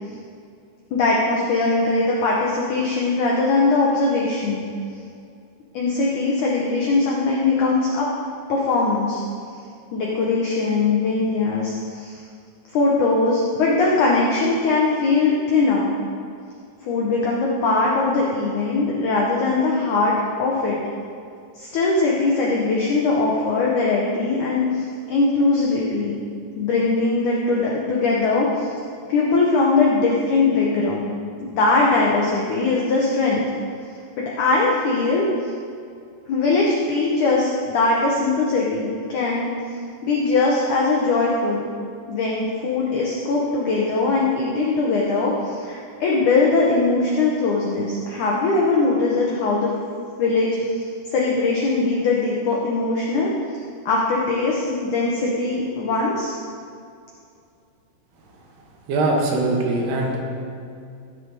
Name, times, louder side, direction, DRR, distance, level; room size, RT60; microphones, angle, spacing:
voice 1, 0.9-4.6 5.7-8.1 8.5-9.2 9.9-12.2 12.7-15.9 16.8-20.1 20.4-20.8 21.6-26.2 26.6-28.7 29.1-31.1 31.4-33.4 34.2-35.5 36.3-39.5 40.0-41.7 42.1-49.7 50.2-53.3 53.8-56.3, left 3 dB, 75° left, -3 dB, 1.8 m, -21 dB
voice 2, 58.9-60.2, right 2 dB, 75° right, 0 dB, 3.2 m, -21 dB
15.5 x 5.3 x 4.7 m, 2.4 s
omnidirectional pair, 4.9 m